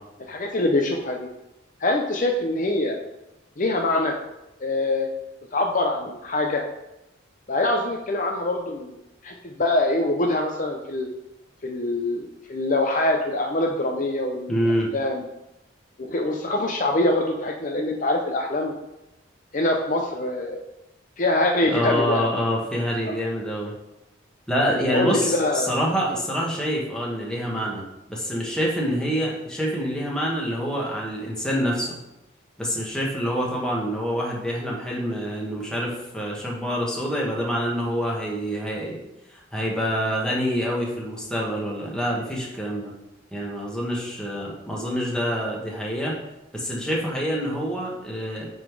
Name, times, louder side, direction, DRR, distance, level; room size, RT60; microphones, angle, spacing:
voice 1, 0.2-1.3 1.8-3.0 3.6-4.2 4.6-5.1 5.5-6.6 7.5-9.0 9.2-11.1 11.6-14.6 14.9-15.2 16.0-18.7 19.5-20.6 21.2-22.2 23.0-23.1 24.9-25.7, left 2 dB, 40° left, 2 dB, 0.6 m, -24 dB
voice 2, 14.5-14.9 16.5-16.6 21.6-23.7 24.5-31.9 32.6-39.0 39.3-42.9 43.3-46.2 46.5-48.5, equal, 5° left, -4 dB, 1.5 m, -26 dB
8.8 x 3.9 x 4.7 m, 0.92 s
head